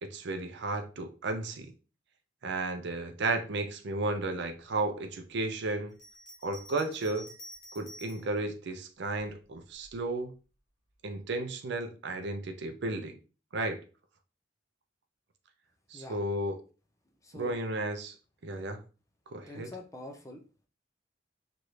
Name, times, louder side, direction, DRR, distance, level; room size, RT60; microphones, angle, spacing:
voice 1, 0.0-1.7 2.4-5.9 6.4-7.3 7.7-10.3 11.0-13.2 13.5-13.8 15.9-16.6 17.3-18.1 18.4-18.8 19.3-19.7, right 2 dB, 60° right, 0.5 m, -33 dB
Bell, 5.9-8.3 9.1-10.0, equal, 65° left, 1.4 m, -50 dB
voice 2, 17.2-17.6 19.5-20.4, left 1 dB, 15° left, 0.5 m, -45 dB
3.1 x 2.5 x 3.1 m
head